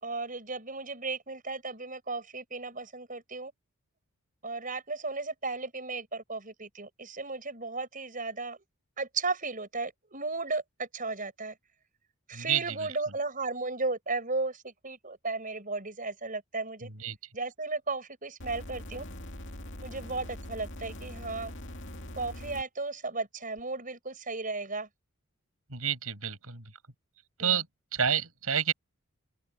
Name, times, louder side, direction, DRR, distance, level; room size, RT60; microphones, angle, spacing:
voice 1, 0.0-3.5 4.4-8.6 9.0-11.5 12.3-16.9 17.3-19.0 19.8-21.5 22.2-24.9 27.4-27.6, right 3 dB, 35° right, 6.3 m, -35 dB
voice 2, 12.3-12.8 16.8-17.2 25.7-26.6 27.4-27.7 27.9-28.7, right 8 dB, 75° right, 6.8 m, -29 dB
sound 1, 18.4-22.6 23.6-23.7, left 1 dB, 55° left, 2.6 m, -42 dB
open air
head